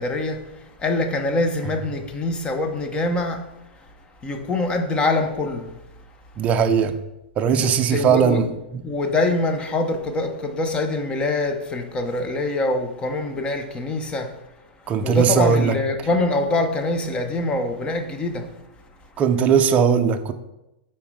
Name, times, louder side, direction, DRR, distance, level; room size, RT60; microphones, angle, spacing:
voice 1, 0.0-3.9 4.2-5.8 7.6-8.4 8.8-14.4 15.0-18.6, left 2 dB, 15° left, 0.7 m, -24 dB
voice 2, 6.4-6.9 7.4-8.5 8.7-8.8 14.9-15.7 19.2-20.3, right 7 dB, 25° right, 0.5 m, -19 dB
5.8 x 4.3 x 4.6 m
hypercardioid pair, 145°, 6 cm